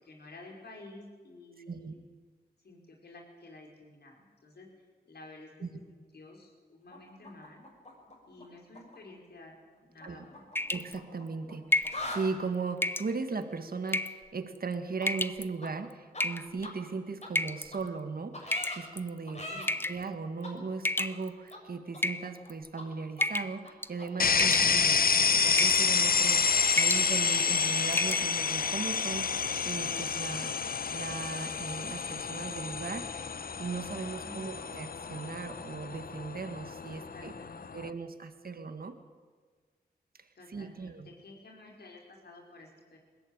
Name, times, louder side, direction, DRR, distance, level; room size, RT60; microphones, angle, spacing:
voice 1, 0.0-2.0 2.6-4.7 5.1-7.6 8.3-9.6 9.8-10.5 19.5-19.8 34.2-34.7 36.9-37.8 40.4-43.0, left 2 dB, 80° left, 1 dB, 5.3 m, -51 dB
sound 1, 6.9-8.4 8.7-9.0 10.0-11.5 11.8-12.3 15.0-15.1 15.6-15.7 16.1-16.2 16.6-16.7 17.2-17.3 17.7-17.8 18.3-18.8 19.3-19.7 20.4-20.5 21.0-21.1 21.5-21.6 21.9-22.5 22.8-22.9 23.2-23.3 23.6-23.7 24.0-24.1 24.4-24.5, left 1 dB, 45° left, 6.8 m, -41 dB
sound 2, 10.6-11.0 11.7-12.0 12.8-13.1 13.9-14.2 15.0-15.4 16.2-16.7 17.4-17.7 18.5-19.1 19.7-20.0 20.8-21.5 22.0-22.7 23.2-23.6 23.8-24.1 24.4-25.0 25.6-25.8 26.2-26.4 26.7-27.1 27.4-27.5 27.9-28.2, left 1 dB, 15° left, 0.9 m, -30 dB
voice 2, 10.7-26.5 26.8-37.3 37.7-39.0 40.2-41.1, right 4 dB, 65° right, 8 dB, 1.7 m, -38 dB
sound 3, 24.2-37.9, left 5 dB, 60° left, 0.8 m, -29 dB
21.0 x 16.5 x 9.3 m, 1.5 s
cardioid pair, 55°, 17 cm